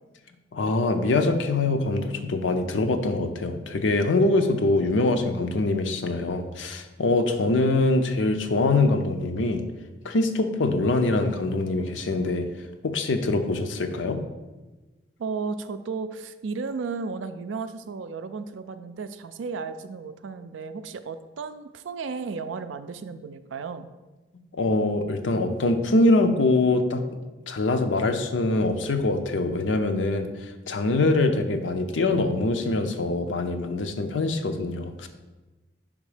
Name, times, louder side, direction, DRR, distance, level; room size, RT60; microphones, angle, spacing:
voice 1, 0.5-9.6 10.0-12.5 12.8-14.2 24.5-27.0 27.5-35.1, left 2 dB, 85° left, 7 dB, 0.6 m, -24 dB
voice 2, 15.2-23.9, right 4 dB, 90° right, 11 dB, 0.4 m, -34 dB
5.3 x 3.6 x 4.9 m, 1.2 s
head